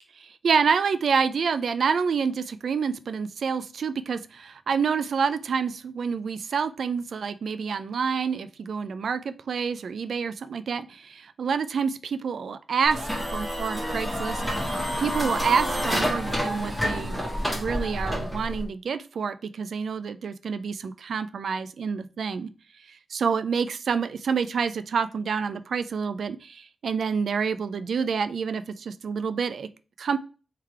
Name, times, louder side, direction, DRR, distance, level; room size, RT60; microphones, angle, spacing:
voice 1, 0.2-14.7 15.0-17.2 17.5-22.5 22.9-29.7 30.0-30.2, right 6 dB, 80° right, 12 dB, 0.3 m, -28 dB
sound 1, 12.9-18.7, equal, 10° right, 1.4 m, -28 dB
3.5 x 3.3 x 4.4 m, 0.35 s
wide cardioid pair, 85°, 0 cm